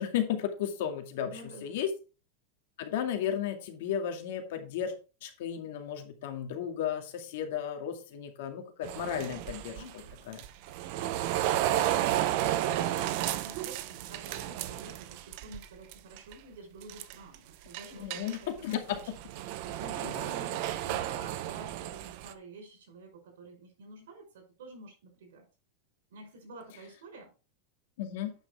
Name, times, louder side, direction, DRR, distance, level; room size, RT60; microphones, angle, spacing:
voice 1, 0.0-1.9 2.8-4.9 5.2-9.8 10.3-10.4 17.9-19.0 20.0-20.1 28.0-28.3, left 9 dB, 60° left, 5 dB, 2.2 m, -34 dB
voice 2, 1.2-1.8 9.7-10.3 11.5-19.1 19.6-25.4 26.1-27.3, right 2 dB, 85° right, 3 dB, 5.3 m, -49 dB
sound 1, 8.8-15.6 15.9-16.3 16.8-17.3 17.7-22.3, right 13 dB, 45° right, 0.8 m, -32 dB
9.1 x 6.1 x 4.3 m, 0.33 s
supercardioid pair, 165°, 0 cm